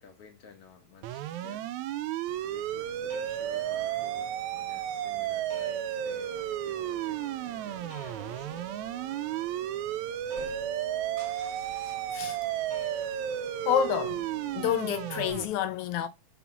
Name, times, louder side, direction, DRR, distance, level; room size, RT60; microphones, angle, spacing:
voice 1, 0.0-1.7 2.4-8.9, left 6 dB, 65° left, 1.5 m, -54 dB
sound 1, 1.0-15.5, right 12 dB, 75° right, 1.8 m, -33 dB
sound 2, 2.2-15.5, right 6 dB, 55° right, 2.1 m, -52 dB
sound 3, 2.8-15.3, left 1 dB, 5° left, 1.2 m, -47 dB
voice 2, 12.1-12.7 13.0-13.1 13.6-14.2 14.6-16.1, left 9 dB, 80° left, 1.7 m, -29 dB
5.8 x 4.0 x 5.8 m
omnidirectional pair, 3.8 m